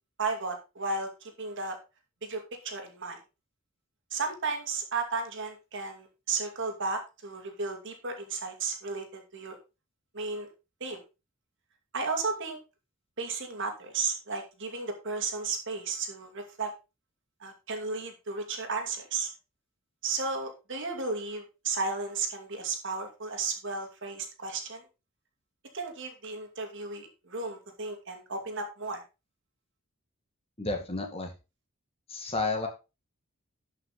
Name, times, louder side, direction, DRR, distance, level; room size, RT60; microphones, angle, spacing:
voice 1, 0.2-1.8 2.2-3.2 4.1-9.6 10.1-10.5 10.8-11.0 11.9-12.6 13.2-16.7 17.4-19.3 20.0-24.8 25.7-29.0, right 4 dB, 60° right, 4 dB, 2.4 m, -34 dB
voice 2, 30.6-31.3 32.1-32.7, left 3 dB, 25° left, 3 dB, 1.9 m, -31 dB
12.0 x 5.9 x 4.0 m, 0.28 s
head